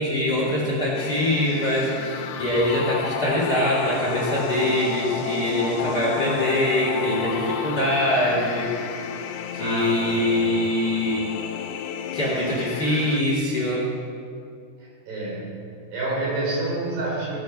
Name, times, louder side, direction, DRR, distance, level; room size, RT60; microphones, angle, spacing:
voice 1, 0.0-8.7 9.5-11.3 12.1-13.9, left 1 dB, 30° left, -5 dB, 2.2 m, -23 dB
sound 1, 0.9-13.2, left 7 dB, 85° left, 1.8 m, -32 dB
voice 2, 9.6-10.3 15.1-15.5 15.9-17.4, right 2 dB, 90° right, -5 dB, 6.6 m, -28 dB
17.5 x 9.4 x 5.3 m, 2.4 s
omnidirectional pair, 4.6 m